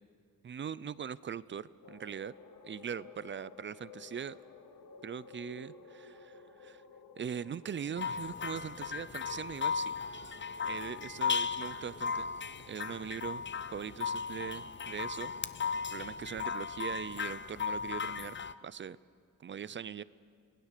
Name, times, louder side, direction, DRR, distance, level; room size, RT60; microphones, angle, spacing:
voice 1, 0.4-2.3 2.6-4.4 5.0-6.8 7.2-9.9 10.6-12.3 12.7-13.4 13.7-15.3 15.7-18.3 18.6-19.0 19.4-20.0, right 7 dB, 35° right, 18 dB, 0.4 m, -41 dB
sound 1, 1.8-16.4, left 4 dB, 75° left, 1.6 m, -56 dB
sound 2, 8.0-18.5, left 6 dB, 35° left, 0.6 m, -36 dB
26.5 x 19.0 x 6.7 m, 2.1 s
wide cardioid pair, 130°, 34 cm